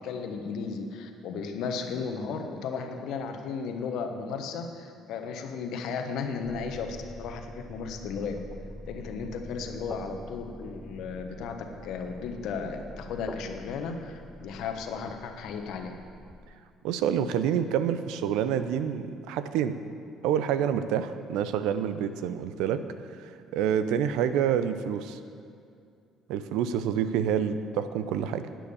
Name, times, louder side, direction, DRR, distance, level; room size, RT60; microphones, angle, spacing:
voice 1, 0.0-8.4 8.9-11.6 11.8-16.0, left 5 dB, 65° left, 5 dB, 1.3 m, -35 dB
sound 1, 6.4-16.5, left 1 dB, 20° left, 0.8 m, -45 dB
voice 2, 16.8-19.8 20.2-22.8 23.2-25.2 26.3-28.5, right 9 dB, 70° right, 11 dB, 0.6 m, -27 dB
11.5 x 9.1 x 7.0 m, 2.4 s
hypercardioid pair, 55°, 0 cm